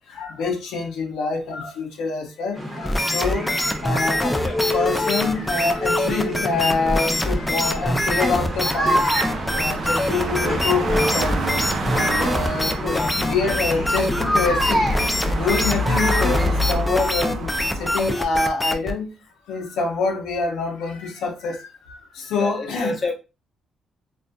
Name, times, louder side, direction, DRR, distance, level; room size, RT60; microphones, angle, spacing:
voice 1, 0.1-3.5 3.8-4.4 4.7-9.0 9.5-11.6 11.8-19.1 19.5-23.0, left 4 dB, 85° left, 0.5 m, -26 dB
sound 1, 2.6-16.8, equal, 10° right, 0.9 m, -28 dB
sound 2, 2.8-18.9, left 1 dB, 10° left, 0.3 m, -24 dB
sound 3, 7.4-18.1, equal, 60° right, 0.5 m, -28 dB
voice 2, 22.4-23.1, left 2 dB, 35° left, 0.8 m, -28 dB
2.5 x 2.3 x 2.3 m
cardioid pair, 90°, 0 cm